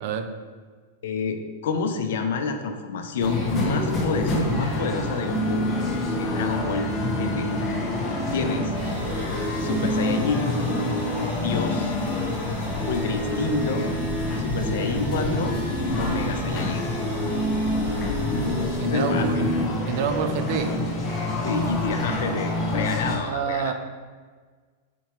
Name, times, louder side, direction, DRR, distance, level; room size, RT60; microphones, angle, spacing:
voice 1, 1.0-5.7 6.2-6.9 7.1-7.5 8.3-8.7 9.6-10.6 11.3-12.0 12.8-13.9 14.4-15.6 16.0-16.9 18.9-19.4 20.5-20.8 21.4-23.7, left 4 dB, 70° left, 6 dB, 0.4 m, -28 dB
sound 1, 3.2-23.2, left 1 dB, 25° left, 0.9 m, -26 dB
sound 2, 8.7-18.8, right 1 dB, 90° right, 1.1 m, -37 dB
voice 2, 18.8-19.5 19.9-20.7 23.2-23.7, right 7 dB, 55° right, 8 dB, 0.4 m, -27 dB
4.3 x 2.8 x 3.0 m, 1.5 s
hypercardioid pair, 110°, 0 cm